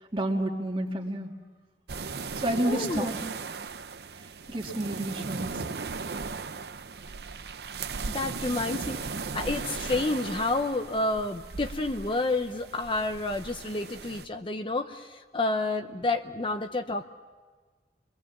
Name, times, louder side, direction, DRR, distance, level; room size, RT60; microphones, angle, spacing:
voice 1, 0.1-1.3 2.3-3.1 4.5-5.6, right 1 dB, 30° right, 1 dB, 2.5 m, -30 dB
sound 1, 1.9-14.3, right 4 dB, 65° right, 0.7 m, -37 dB
voice 2, 2.7-3.1 8.1-17.0, left 2 dB, 30° left, 7 dB, 0.7 m, -30 dB
29.5 x 22.5 x 7.3 m, 1.4 s
head